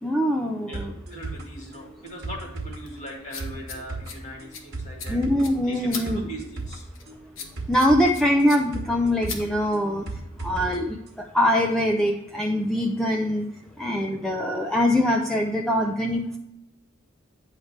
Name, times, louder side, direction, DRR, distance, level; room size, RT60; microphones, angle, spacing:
voice 1, 0.0-0.9 5.1-6.3 7.7-13.5 13.8-16.4, left 1 dB, 5° left, 0 dB, 0.4 m, -23 dB
voice 2, 0.7-5.2 5.7-6.9 13.9-14.2, right 1 dB, 35° left, 0 dB, 1.8 m, -40 dB
sound 1, 0.7-10.8 11.1-11.2, right 3 dB, 50° right, 1.2 m, -36 dB
sound 2, 1.8-10.1, left 6 dB, 75° left, 1.1 m, -42 dB
9.3 x 3.2 x 6.4 m, 0.85 s
head